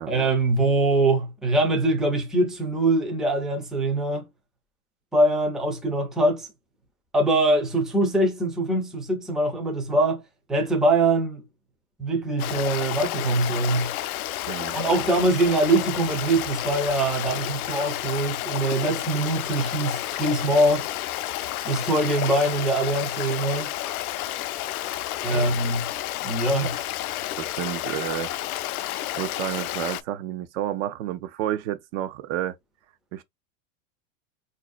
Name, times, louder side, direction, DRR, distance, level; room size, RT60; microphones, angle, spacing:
voice 1, 0.1-4.2 5.1-6.5 7.1-10.2 10.5-11.4 12.0-13.9 14.7-20.9 21.6-23.7 25.2-25.9 26.2-26.8, right 2 dB, ahead, 0.5 m, -23 dB
Stream, 12.4-30.0, left 14 dB, 80° left, 0.5 m, -31 dB
voice 2, 14.5-14.8 24.8-24.9 25.3-25.6 26.6-26.7 27.4-28.3 29.2-32.6 33.1-33.2, right 12 dB, 55° right, 0.6 m, -30 dB
4.1 x 2.7 x 2.4 m
supercardioid pair, 130°, 43 cm